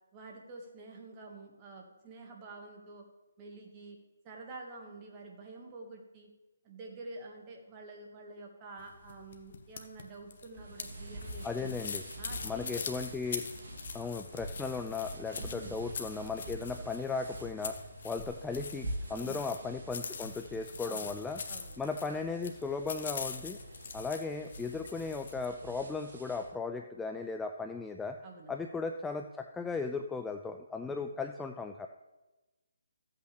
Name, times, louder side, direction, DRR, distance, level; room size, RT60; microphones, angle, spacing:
voice 1, 0.1-3.0 3.4-4.0 4.2-6.3 6.6-11.7 12.2-12.8 15.3-15.8 19.1-19.5 20.8-21.1 21.5-21.8 28.2-28.5 30.8-31.1, right 3 dB, 20° right, 1 dB, 1.7 m, -48 dB
sound 1, 8.8-25.5, left 5 dB, 55° left, 1.0 m, -44 dB
sound 2, 10.5-26.5, right 1 dB, 55° right, 2.3 m, -46 dB
voice 2, 11.4-12.0 12.4-13.5 13.9-17.8 18.0-21.4 21.8-23.6 23.9-28.2 28.5-31.9, left 4 dB, 5° left, 5 dB, 0.3 m, -36 dB
14.0 x 8.2 x 3.3 m, 1.1 s
hypercardioid pair, 160°, 0 cm